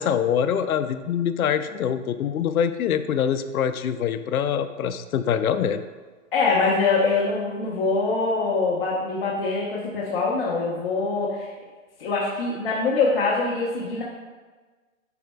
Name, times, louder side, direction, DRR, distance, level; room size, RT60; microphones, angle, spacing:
voice 1, 0.0-5.9, left 8 dB, 90° left, 10 dB, 0.6 m, -24 dB
voice 2, 6.3-11.5 12.0-14.0, left 3 dB, 40° left, -6 dB, 1.1 m, -24 dB
11.5 x 4.3 x 2.3 m, 1.4 s
hypercardioid pair, 180°, 41 cm